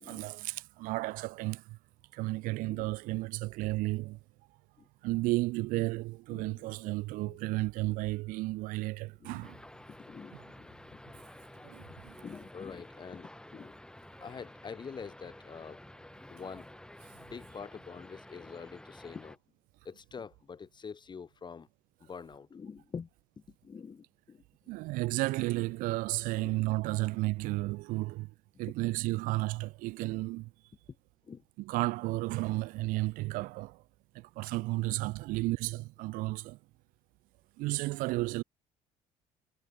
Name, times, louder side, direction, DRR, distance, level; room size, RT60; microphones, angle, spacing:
voice 1, 0.0-1.8 2.1-4.2 5.0-9.6 11.6-12.1 24.7-28.3 28.6-30.5 31.6-33.8 34.4-36.6 37.6-38.4, right 21 dB, 80° right, 1.5 m, -33 dB
voice 2, 2.6-3.0 4.8-4.9 6.3-7.0 7.3-7.4 7.9-8.1 9.2-9.6 9.9-11.2 12.2-13.7 14.2-15.8 16.3-16.7 17.2-19.4 19.8-21.7 22.0-23.1 23.4-24.4 26.3-26.6 31.2-31.4 34.9-35.0, left 6 dB, 35° left, 2.5 m, -46 dB
sound 1, 9.4-19.4, left 1 dB, 5° left, 1.6 m, -51 dB
supercardioid pair, 90°, 14 cm